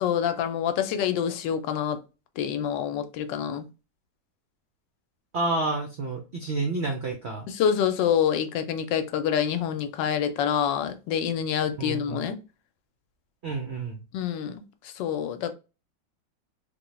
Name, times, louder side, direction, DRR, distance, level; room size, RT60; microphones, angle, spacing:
voice 1, 0.0-2.0 2.4-3.7 7.5-12.4 14.1-15.5, left 8 dB, 85° left, 1.2 m, -27 dB
voice 2, 5.3-7.5 11.8-12.3 13.4-14.0, right 3 dB, 75° right, 0.6 m, -29 dB
3.5 x 2.2 x 3.0 m
omnidirectional pair, 1.9 m